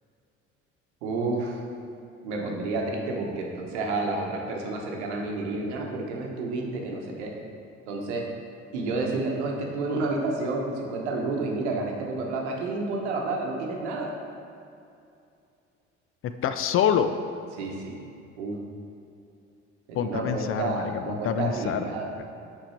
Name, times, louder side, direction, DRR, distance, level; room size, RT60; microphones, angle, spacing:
voice 1, 1.0-1.6 2.2-7.3 7.9-8.2 8.7-14.1 17.5-18.0 18.4-18.6 19.9-22.1, right 3 dB, 80° right, 0 dB, 1.0 m, -30 dB
voice 2, 16.2-17.1 20.0-21.9 22.2-22.3, left 8 dB, 40° left, 10 dB, 0.4 m, -26 dB
5.7 x 5.3 x 4.3 m, 2.6 s
hypercardioid pair, 60°, 34 cm